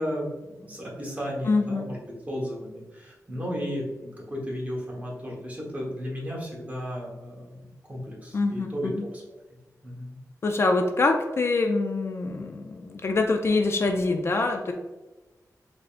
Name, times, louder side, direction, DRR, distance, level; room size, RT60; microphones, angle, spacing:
voice 1, 0.0-7.6 7.9-9.2 9.8-10.2, equal, 25° right, -3 dB, 1.1 m, -34 dB
voice 2, 1.5-1.9 8.3-9.1 10.4-14.7, left 3 dB, 45° left, 3 dB, 0.3 m, -25 dB
3.7 x 3.4 x 2.4 m, 1.1 s
wide cardioid pair, 125°, 6 cm